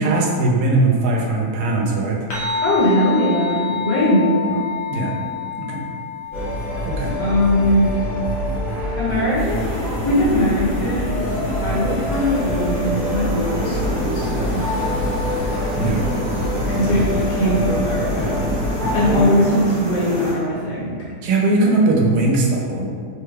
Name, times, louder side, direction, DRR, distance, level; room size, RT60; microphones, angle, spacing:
voice 1, 0.0-2.2 4.9-5.1 5.6-5.8 6.8-7.1 15.8-16.0 19.2-19.3 21.2-22.9, right 2 dB, 75° right, -1 dB, 1.1 m, -19 dB
sound 1, 2.3-11.0, left 7 dB, 60° left, 1.1 m, -30 dB
voice 2, 2.6-4.6 7.2-7.9 9.0-11.3 11.6-14.6 16.7-18.4 18.9-21.0, equal, 80° left, -7 dB, 1.5 m, -20 dB
sound 2, 6.3-19.2, left 1 dB, 30° right, 1.1 m, -25 dB
sound 3, 9.4-20.4, equal, 25° left, 0.6 m, -28 dB
3.3 x 2.2 x 3.2 m, 2.1 s
omnidirectional pair, 1.8 m